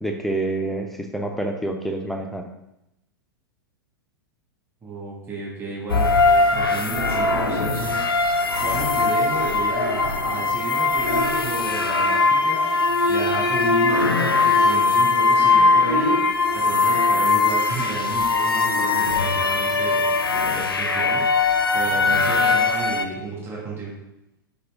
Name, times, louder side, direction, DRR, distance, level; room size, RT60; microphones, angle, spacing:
voice 1, 0.0-2.5, right 2 dB, ahead, 3 dB, 0.6 m, -27 dB
voice 2, 4.8-6.1 6.5-16.1 16.5-23.9, right 3 dB, 20° right, -6 dB, 2.4 m, -33 dB
sound 1, 5.9-23.1, left 3 dB, 80° left, 0.6 m, -20 dB
5.5 x 4.9 x 3.8 m, 0.87 s
figure-of-eight pair, 95°, 12 cm